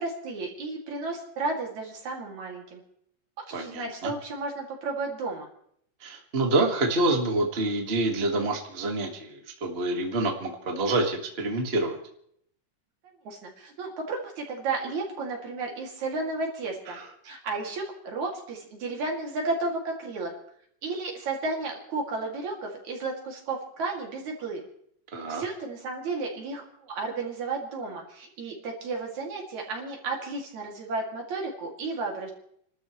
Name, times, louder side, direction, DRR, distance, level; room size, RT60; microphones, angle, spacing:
voice 1, 0.0-2.8 3.5-5.5 13.3-17.0 17.2-20.3 20.8-24.6 25.3-32.3, right 3 dB, 60° right, 0 dB, 3.8 m, -33 dB
voice 2, 3.5-4.1 6.0-12.0 16.9-17.0 25.1-25.4, right 2 dB, 25° right, 2 dB, 1.3 m, -27 dB
30.0 x 13.0 x 3.1 m, 0.68 s
omnidirectional pair, 3.7 m